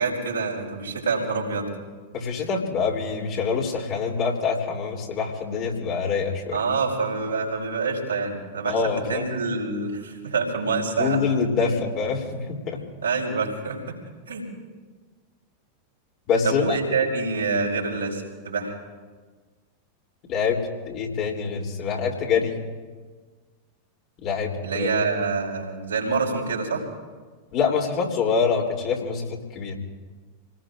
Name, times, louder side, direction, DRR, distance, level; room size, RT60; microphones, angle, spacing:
voice 1, 0.0-1.7 6.5-11.2 13.0-13.8 14.3-14.4 16.4-18.7 24.6-26.8, right 4 dB, 75° right, -2 dB, 4.8 m, -26 dB
voice 2, 2.1-6.6 8.6-9.3 11.0-12.8 16.3-16.8 20.3-20.6 20.9-22.5 24.2-24.9 27.5-29.8, left 5 dB, 40° left, -1 dB, 3.3 m, -25 dB
29.0 x 19.0 x 2.5 m, 1.4 s
figure-of-eight pair, 90°, 0 cm